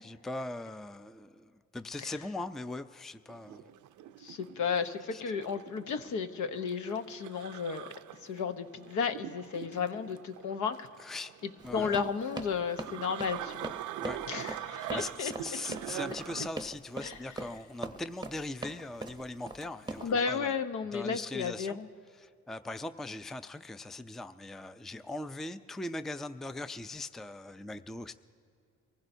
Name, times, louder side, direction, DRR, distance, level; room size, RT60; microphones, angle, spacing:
voice 1, 0.0-3.6 5.1-5.2 11.0-11.3 11.6-12.0 14.0-14.3 14.9-20.5 20.9-21.8 22.2-28.1, left 2 dB, ahead, 11 dB, 0.4 m, -40 dB
sound 1, 3.3-16.5, right 12 dB, 80° right, 0.5 m, -43 dB
voice 2, 4.2-7.9 8.2-10.9 11.7-13.7 14.3-15.3 17.0-17.2 20.0-21.9, left 6 dB, 75° left, 9 dB, 0.9 m, -33 dB
Run, 11.6-20.1, right 3 dB, 15° right, 0.7 m, -41 dB
24.0 x 15.5 x 2.7 m, 2.4 s
cardioid pair, 90°, 30 cm